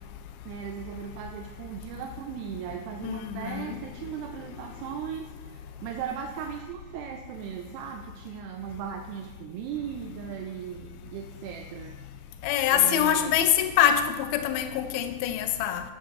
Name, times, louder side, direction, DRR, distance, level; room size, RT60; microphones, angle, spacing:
voice 1, 0.5-11.9 12.7-13.4, right 8 dB, 85° right, 2.7 m, -37 dB
voice 2, 3.0-3.8 12.4-15.8, left 10 dB, 80° left, 2.4 m, -24 dB
12.5 x 7.7 x 4.6 m
omnidirectional pair, 4.7 m